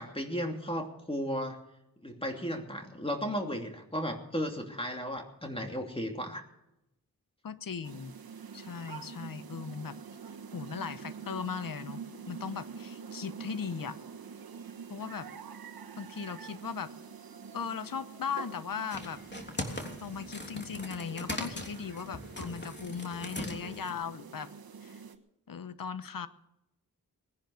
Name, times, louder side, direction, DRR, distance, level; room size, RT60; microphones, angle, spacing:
voice 1, 0.0-1.6 2.0-6.5, equal, 15° left, 3 dB, 2.9 m, -35 dB
voice 2, 7.4-8.1 8.5-10.0 10.5-14.0 14.9-15.3 16.0-16.9 17.5-19.2 19.6-24.5 24.8-25.0 25.5-26.3, left 6 dB, 65° left, 14 dB, 1.1 m, -38 dB
sound 1, 7.8-25.2, right 6 dB, 80° right, 1.4 m, -46 dB
sound 2, 18.9-24.0, left 1 dB, 30° left, 3.3 m, -40 dB
20.5 x 10.5 x 6.5 m, 0.87 s
cardioid pair, 45°, 35 cm